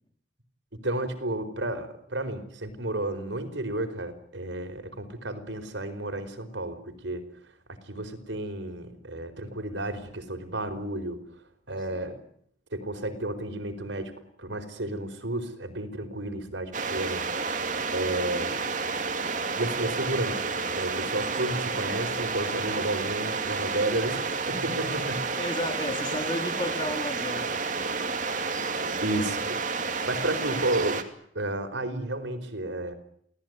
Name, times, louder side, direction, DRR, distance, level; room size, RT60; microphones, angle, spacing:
voice 1, 0.7-7.3 7.7-11.2 11.7-12.2 12.7-14.1 14.4-17.2 17.9-18.6 19.6-25.3 27.9-28.0 29.0-29.6 30.1-31.0 31.3-32.9, right 1 dB, 70° right, 8 dB, 4.7 m, -32 dB
voice 2, 11.9-12.2 18.3-18.7 25.3-27.5, left 1 dB, 25° left, 8 dB, 2.7 m, -34 dB
sound 1, 16.7-31.0, right 4 dB, 40° right, 2.8 m, -30 dB
28.5 x 18.5 x 9.6 m, 0.68 s
head